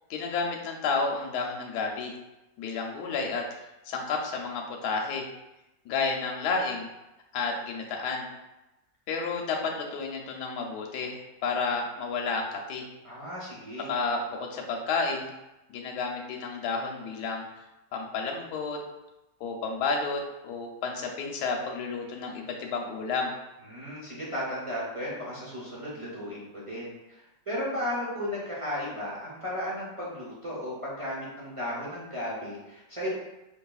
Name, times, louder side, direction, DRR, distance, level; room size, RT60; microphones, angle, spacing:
voice 1, 0.1-2.1 2.6-3.5 3.9-5.2 5.8-6.9 7.3-8.3 9.1-12.8 13.9-15.3 15.7-17.4 17.9-18.8 19.4-23.3, left 4 dB, 70° left, 0 dB, 1.1 m, -31 dB
voice 2, 13.0-13.9 23.7-33.1, left 1 dB, 40° right, -7 dB, 0.4 m, -35 dB
4.7 x 2.9 x 2.3 m, 0.96 s
omnidirectional pair, 1.9 m